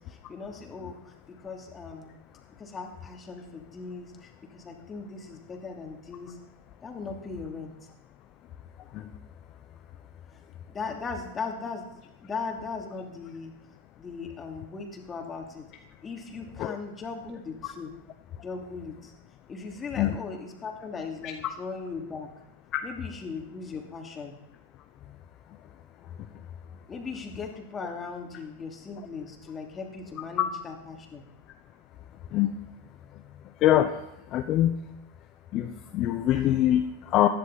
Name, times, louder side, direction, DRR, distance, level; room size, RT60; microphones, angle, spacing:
voice 1, 0.1-2.2 2.6-6.4 6.8-7.7 10.7-11.9 12.2-13.5 14.0-15.7 16.0-18.0 18.3-19.1 19.5-22.3 22.8-24.4 26.9-31.2, left 4 dB, 20° left, 2 dB, 2.7 m, -38 dB
voice 2, 33.6-33.9 34.3-34.8 35.5-37.3, left 12 dB, 40° left, 6 dB, 0.9 m, -23 dB
15.5 x 11.0 x 4.2 m, 0.86 s
hypercardioid pair, 105°, 0 cm